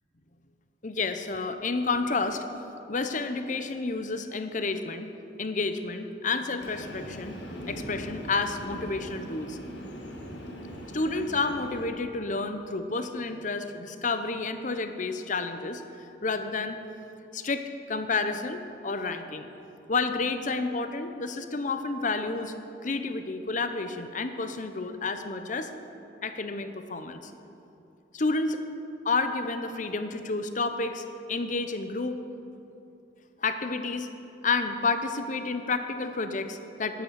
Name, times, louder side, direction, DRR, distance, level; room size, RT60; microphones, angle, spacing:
voice 1, 0.8-2.4 2.9-5.1 5.4-7.4 7.7-9.6 10.9-16.8 17.3-19.5 19.9-22.5 22.8-25.7 26.2-27.3 28.1-28.6 29.0-32.2 33.4-34.1 34.4-37.0, left 3 dB, 40° left, 8 dB, 0.8 m, -30 dB
Train, 6.6-11.9, equal, 75° left, 2.0 m, -40 dB
11.0 x 10.0 x 8.0 m, 2.8 s
head